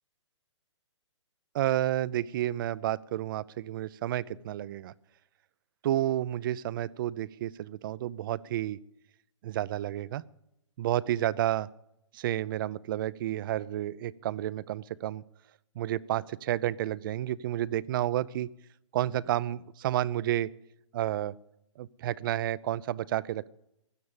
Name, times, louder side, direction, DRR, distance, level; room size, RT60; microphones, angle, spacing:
voice 1, 1.5-4.9 5.8-8.8 9.4-10.2 10.8-11.7 12.1-15.2 15.8-18.5 18.9-20.5 20.9-21.3 21.8-23.5, right 13 dB, 45° right, 20 dB, 0.6 m, -30 dB
16.5 x 12.0 x 7.2 m, 0.80 s
hypercardioid pair, 130°, 16 cm